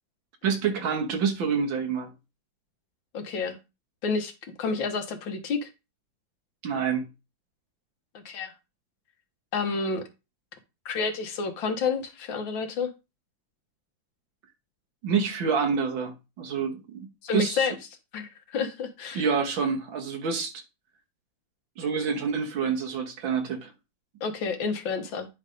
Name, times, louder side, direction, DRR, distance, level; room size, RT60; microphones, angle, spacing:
voice 1, 0.4-2.1 6.6-7.1 15.0-17.7 19.1-20.6 21.8-23.7, right 6 dB, 85° right, 2.1 m, -27 dB
voice 2, 3.1-3.6 4.0-4.3 4.6-5.7 8.1-8.5 9.5-10.0 10.9-12.9 17.2-17.7 18.1-19.2 24.2-25.3, left 5 dB, 80° left, 1.9 m, -29 dB
9.6 x 3.4 x 5.2 m
omnidirectional pair, 2.1 m